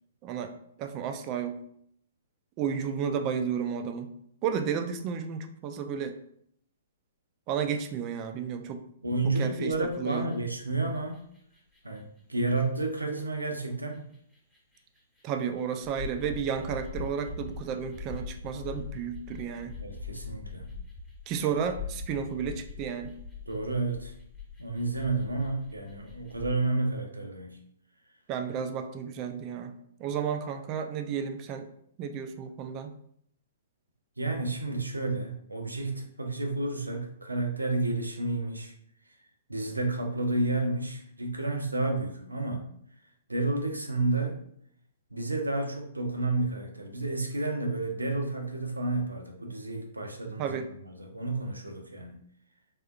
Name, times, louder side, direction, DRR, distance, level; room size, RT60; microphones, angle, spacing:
voice 1, 0.2-0.5 0.8-1.6 2.6-4.1 4.4-6.2 7.5-8.8 9.2-10.3 15.2-19.8 21.3-23.1 28.3-31.7 32.0-32.9 50.4-50.7, right 7 dB, 30° right, 7 dB, 0.3 m, -32 dB
voice 2, 9.0-11.3 11.8-12.0 12.3-14.0 19.8-20.7 23.5-24.1 24.6-27.6 34.2-38.7 39.5-42.7 43.3-44.4 45.1-52.2, right 2 dB, 85° right, 2 dB, 0.6 m, -31 dB
sound 1, 9.7-10.6 10.9-26.5, left 5 dB, 10° left, 0.9 m, -43 dB
3.6 x 2.4 x 2.3 m, 0.67 s
figure-of-eight pair, 115°, 0 cm